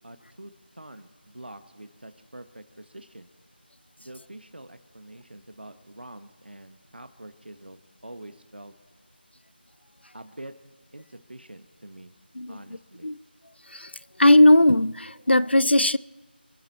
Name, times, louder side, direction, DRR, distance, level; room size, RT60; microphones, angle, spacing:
voice 1, 0.0-3.3 4.0-8.7 10.1-10.5 10.9-12.1 12.5-13.1, right 1 dB, 65° right, 1.4 m, -45 dB
voice 2, 14.2-16.0, left 1 dB, 80° left, 0.5 m, -18 dB
27.5 x 10.5 x 4.2 m
figure-of-eight pair, 170°, 6 cm